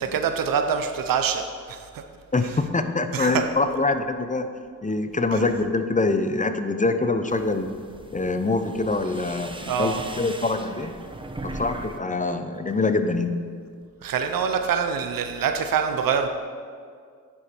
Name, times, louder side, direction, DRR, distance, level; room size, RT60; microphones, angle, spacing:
voice 1, 0.0-2.0 3.1-3.4 5.3-5.4 9.7-10.0 14.0-16.3, right 7 dB, 85° right, 7 dB, 0.7 m, -25 dB
voice 2, 2.3-4.5 4.8-7.7 8.1-10.9 11.4-13.4, left 3 dB, 25° left, 8 dB, 0.6 m, -24 dB
sound 1, 7.3-12.0 12.3-12.9, right 2 dB, 15° right, 0.7 m, -39 dB
9.8 x 5.1 x 4.4 m, 2.1 s
cardioid pair, 50°, 33 cm